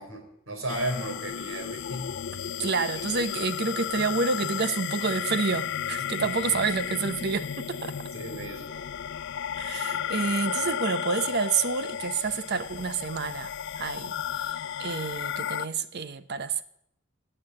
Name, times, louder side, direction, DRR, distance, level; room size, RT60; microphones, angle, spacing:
voice 1, 0.0-2.2 8.1-8.8, right 1 dB, 80° right, 4.1 m, -34 dB
sound 1, 0.7-15.7, left 9 dB, 60° left, 0.4 m, -33 dB
voice 2, 2.6-7.9 9.6-16.6, right 5 dB, 55° right, 0.8 m, -29 dB
17.0 x 6.7 x 7.7 m
head